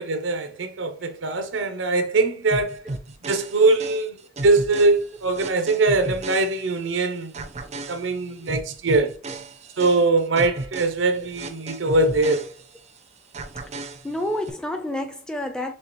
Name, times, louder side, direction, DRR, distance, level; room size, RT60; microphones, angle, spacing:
voice 1, 0.0-2.8 3.2-4.2 4.4-7.5 7.9-9.2 9.8-12.5, right 3 dB, 85° right, 0.7 m, -22 dB
sound 1, 2.5-7.0 7.3-13.0 13.3-14.5, right 2 dB, 35° right, 0.5 m, -35 dB
voice 2, 13.8-15.7, left 1 dB, 5° left, 0.6 m, -30 dB
6.3 x 2.4 x 2.9 m
head